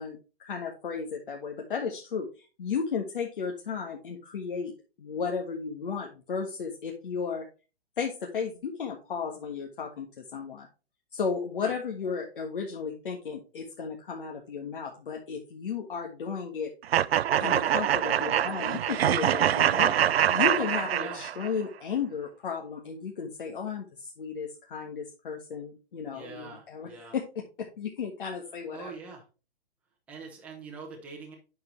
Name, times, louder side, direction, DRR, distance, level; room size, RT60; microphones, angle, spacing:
voice 1, 0.0-4.7 5.0-7.4 8.0-10.7 11.1-16.7 17.4-27.2 27.8-28.9, left 6 dB, 55° left, 1 dB, 1.6 m, -34 dB
sound 1, 16.9-21.5, right 10 dB, 70° right, 0.5 m, -24 dB
voice 2, 26.1-27.2 28.7-29.2 30.1-31.3, right 4 dB, 5° right, -1 dB, 0.9 m, -43 dB
8.8 x 6.0 x 3.2 m, 0.32 s
hypercardioid pair, 170°, 32 cm